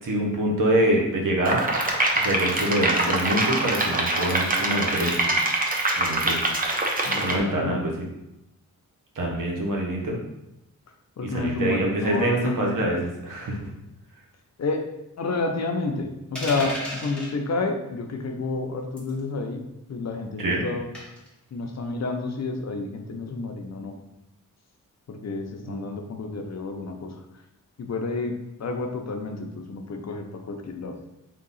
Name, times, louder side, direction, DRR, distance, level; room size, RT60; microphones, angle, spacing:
voice 1, 0.0-1.6 2.1-5.3 6.0-6.4 7.2-8.1 9.1-10.2 11.2-13.7 20.4-20.6 25.6-25.8, right 1 dB, 65° right, -1 dB, 1.0 m, -25 dB
sound 1, 1.4-7.4, right 2 dB, 25° right, 0.6 m, -24 dB
voice 2, 7.0-7.8 11.2-12.8 14.6-14.8 15.2-19.6 19.9-20.9 21.5-23.9 25.1-27.1 27.8-28.3 28.6-30.9, left 3 dB, 50° left, 4 dB, 0.6 m, -30 dB
sound 2, 16.3-17.3 19.0-19.2 20.9-21.3, equal, 5° left, 1.1 m, -33 dB
3.7 x 2.8 x 3.9 m, 0.87 s
wide cardioid pair, 105°, 34 cm